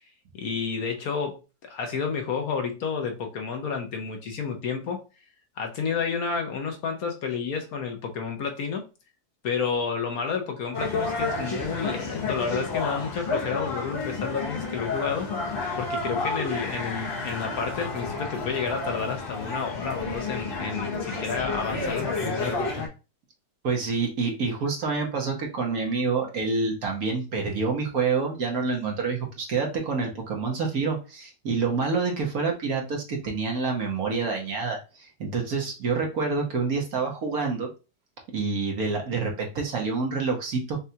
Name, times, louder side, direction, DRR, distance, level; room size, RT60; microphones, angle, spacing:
voice 1, 0.4-5.0 5.6-8.8 9.4-15.3 15.8-22.9, left 5 dB, 65° left, 1.2 m, -30 dB
sound 1, 10.7-22.9, left 3 dB, 40° left, 1.0 m, -31 dB
voice 2, 23.6-37.7 38.3-40.8, right 4 dB, 60° right, 1.5 m, -27 dB
5.5 x 2.4 x 2.8 m
omnidirectional pair, 1.8 m